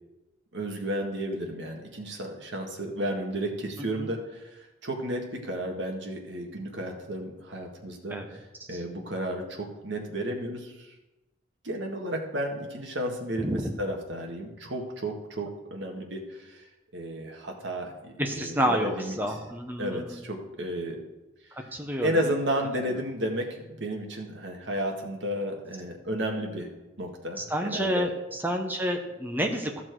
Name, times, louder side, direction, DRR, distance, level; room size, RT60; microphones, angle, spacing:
voice 1, 0.5-8.2 8.7-10.9 11.6-16.6 16.9-19.4 19.8-21.0 22.0-26.7 27.0-28.1, right 1 dB, 70° right, 1 dB, 1.8 m, -33 dB
voice 2, 13.4-13.7 18.2-20.2 21.5-22.3 27.4-29.8, equal, 10° right, 3 dB, 0.9 m, -29 dB
14.0 x 6.0 x 4.6 m, 1.0 s
head